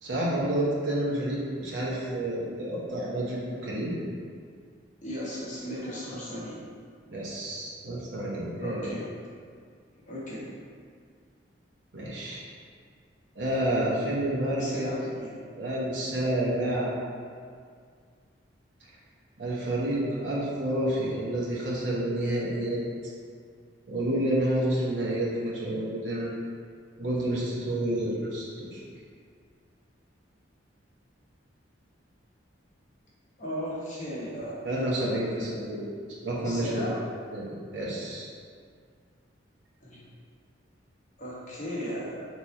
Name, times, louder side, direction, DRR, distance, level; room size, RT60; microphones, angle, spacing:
voice 1, 0.0-4.0 7.1-8.9 11.9-12.4 13.4-15.0 15.6-16.9 19.4-22.8 23.9-26.3 27.0-28.8 34.7-35.8 36.2-36.8 37.3-38.3, right 1 dB, 75° right, -6 dB, 0.8 m, -29 dB
voice 2, 5.0-6.6 8.6-9.0 10.1-10.5 14.6-15.4 33.4-34.7 36.4-37.0 39.8-40.0 41.2-42.2, equal, 40° left, -7 dB, 1.0 m, -36 dB
3.6 x 3.0 x 4.1 m, 2.1 s
head